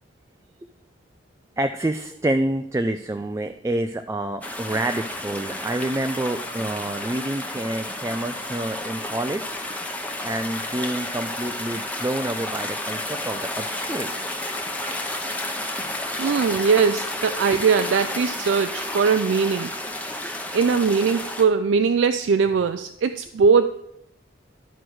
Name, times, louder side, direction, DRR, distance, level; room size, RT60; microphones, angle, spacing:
voice 1, 1.6-9.6 10.2-14.1 20.2-20.3, right 1 dB, 15° right, 7 dB, 0.3 m, -28 dB
sound 1, 4.4-21.4, left 1 dB, 10° left, 0.7 m, -31 dB
voice 2, 16.2-19.7 20.5-23.7, right 5 dB, 90° right, 9 dB, 0.4 m, -20 dB
11.5 x 4.6 x 6.2 m, 0.78 s
head